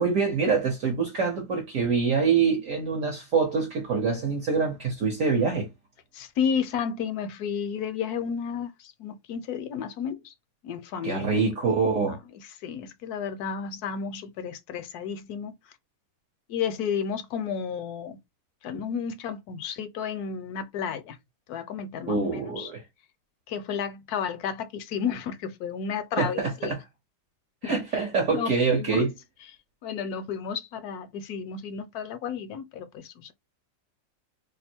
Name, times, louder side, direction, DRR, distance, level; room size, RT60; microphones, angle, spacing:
voice 1, 0.0-5.7 11.0-12.2 22.1-22.8 26.2-26.8 27.6-29.1, right 5 dB, 55° right, 1.0 m, -25 dB
voice 2, 6.1-10.3 10.6-11.4 12.1-12.2 12.6-15.5 16.5-18.2 18.6-21.2 21.5-22.7 23.5-26.7 27.6-27.8 28.3-29.0 29.8-33.3, left 7 dB, 70° left, 1.0 m, -32 dB
2.9 x 2.5 x 4.2 m
omnidirectional pair, 1.9 m